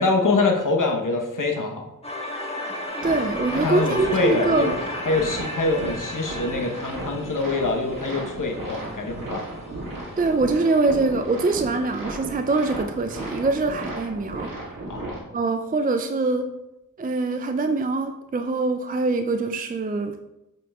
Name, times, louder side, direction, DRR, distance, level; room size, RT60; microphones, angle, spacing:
voice 1, 0.0-1.8 3.6-4.7 5.1-9.4 14.9-15.2, left 3 dB, 70° left, 1 dB, 1.0 m, -24 dB
sound 1, 2.0-8.9, left 1 dB, 20° left, 1.3 m, -33 dB
voice 2, 3.0-4.7 10.2-14.5 15.3-16.5 17.0-20.2, right 3 dB, 25° right, 6 dB, 0.4 m, -23 dB
sound 2, 3.0-15.2, right 1 dB, 80° right, 1.7 m, -35 dB
7.6 x 5.3 x 2.3 m, 0.92 s
wide cardioid pair, 55°, 33 cm